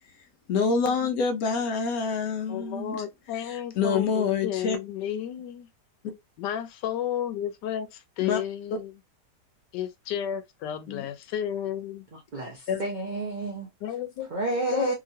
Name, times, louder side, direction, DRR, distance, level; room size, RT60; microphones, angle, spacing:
voice 1, 0.5-3.0 3.8-4.8 8.2-8.4 10.9-11.1 12.7-12.8, left 5 dB, 65° left, 1.0 m, -26 dB
voice 2, 2.5-5.7 6.4-8.9 9.7-12.1 13.8-14.3 14.7-14.9, left 10 dB, 90° left, 1.2 m, -32 dB
voice 3, 12.1-13.7 14.3-14.9, right 2 dB, 85° right, 0.4 m, -30 dB
2.9 x 2.9 x 2.6 m
omnidirectional pair, 1.8 m